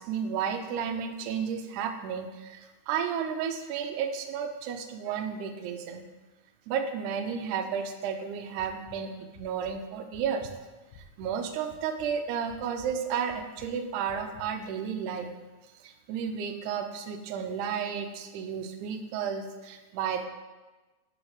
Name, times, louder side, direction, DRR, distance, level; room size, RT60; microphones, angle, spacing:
voice 1, 0.0-6.0 6.7-9.1 9.4-10.5 11.2-15.3 15.8-20.3, right 7 dB, 85° right, 6 dB, 2.0 m, -32 dB
sound 1, 8.6-9.0 9.3-9.8 10.1-11.4 11.7-12.1 12.5-12.9 13.3-13.7 14.1-14.5, left 5 dB, 75° left, 1.8 m, -50 dB
6.3 x 5.6 x 3.1 m, 1.2 s
omnidirectional pair, 3.5 m